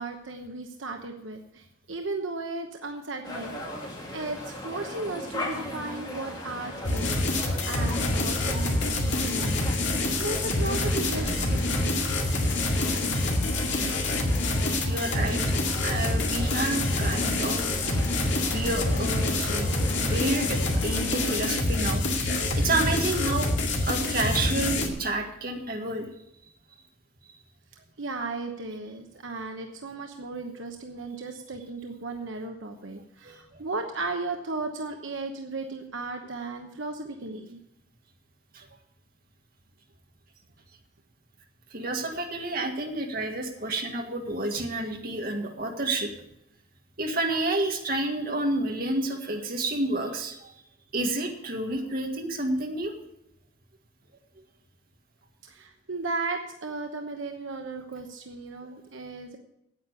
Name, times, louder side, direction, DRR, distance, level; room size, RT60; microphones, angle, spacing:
voice 1, 0.0-3.6 4.1-12.1 15.4-15.5 28.0-37.6 55.4-59.4, right 3 dB, 75° right, 4 dB, 1.0 m, -35 dB
sound 1, 3.2-21.3, left 1 dB, 20° left, 2.3 m, -38 dB
sound 2, 6.8-24.9, left 2 dB, 65° left, 2.2 m, -26 dB
voice 2, 14.8-17.8 18.5-22.0 22.6-26.1 33.2-33.6 38.5-38.6 41.7-46.1 47.0-50.5 50.9-52.9, right 2 dB, 50° right, 2 dB, 1.8 m, -30 dB
9.4 x 8.6 x 8.0 m, 0.82 s
head